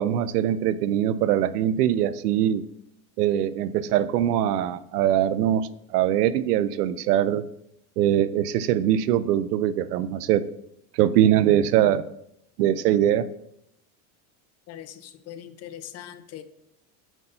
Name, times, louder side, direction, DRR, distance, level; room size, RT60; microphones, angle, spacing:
voice 1, 0.0-2.7 3.2-7.4 8.0-10.4 10.9-12.0 12.6-13.2, right 11 dB, 90° right, 15 dB, 0.7 m, -22 dB
voice 2, 14.7-16.4, left 11 dB, 35° left, 11 dB, 0.7 m, -41 dB
9.0 x 4.1 x 5.6 m, 0.77 s
supercardioid pair, 130°, 45 cm